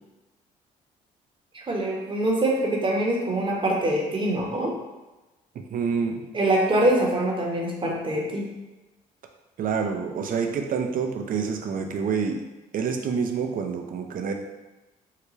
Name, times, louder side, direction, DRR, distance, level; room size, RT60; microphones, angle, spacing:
voice 1, 1.5-4.7 6.3-8.5, right 1 dB, 25° right, -1 dB, 1.0 m, -24 dB
voice 2, 5.7-6.2 9.6-12.4 12.7-14.3, right 6 dB, 50° right, 4 dB, 0.5 m, -27 dB
3.7 x 2.2 x 3.1 m, 1.1 s
hypercardioid pair, 60°, 18 cm